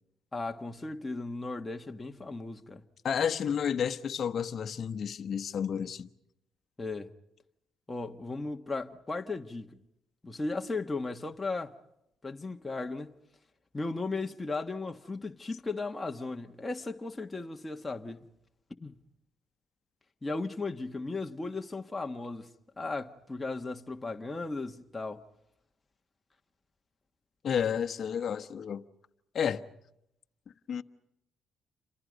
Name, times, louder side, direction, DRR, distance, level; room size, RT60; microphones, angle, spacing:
voice 1, 0.3-2.8 6.8-7.1 7.9-9.8 10.2-11.8 12.2-13.1 13.7-18.3 18.8-18.9 20.2-25.2, left 3 dB, 20° left, 1.6 m, -36 dB
voice 2, 3.0-6.1 27.4-28.8 29.3-29.6 30.7-30.8, left 8 dB, 55° left, 1.1 m, -31 dB
29.5 x 27.0 x 5.3 m
cardioid pair, 90°, 0 cm